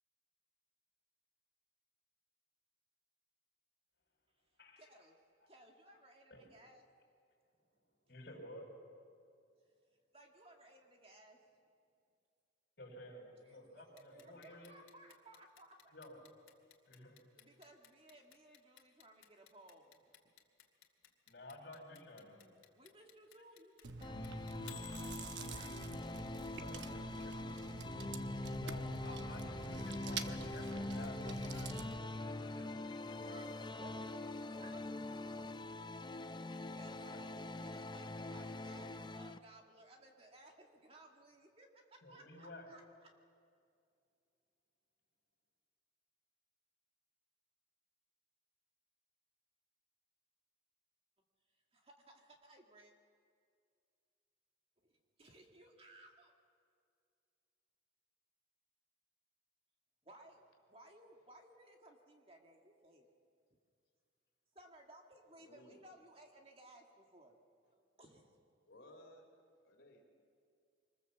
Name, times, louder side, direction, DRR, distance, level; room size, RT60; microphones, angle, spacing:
voice 1, 4.8-5.2 5.5-6.8 10.1-11.4 13.4-15.9 17.4-20.2 22.7-25.9 30.9-31.5 33.2-34.3 34.5-34.8 35.2-35.6 36.4-43.1 51.7-52.9 54.8-54.9 55.2-56.3 60.0-63.1 64.5-67.4 67.7-68.4, right 1 dB, 30° right, 2 dB, 1.9 m, -61 dB
voice 2, 8.1-8.7 12.8-14.7 15.9-16.2 16.9-17.2 21.3-22.5 26.6-27.6 28.6-33.8 34.1-34.6 37.1-37.2 42.0-42.7, left 1 dB, 55° left, 0 dB, 5.7 m, -53 dB
Clock, 14.0-25.9, left 12 dB, 90° left, 2.2 m, -58 dB
Chewing mastication, 23.8-32.0, right 4 dB, 65° right, 1.0 m, -47 dB
sound 1, 24.0-39.4, left 2 dB, 25° left, 0.5 m, -44 dB
voice 3, 65.3-65.8 68.7-69.3 69.6-70.0, left 1 dB, 70° left, 2 dB, 3.4 m, -59 dB
25.0 x 20.5 x 7.2 m, 2.3 s
head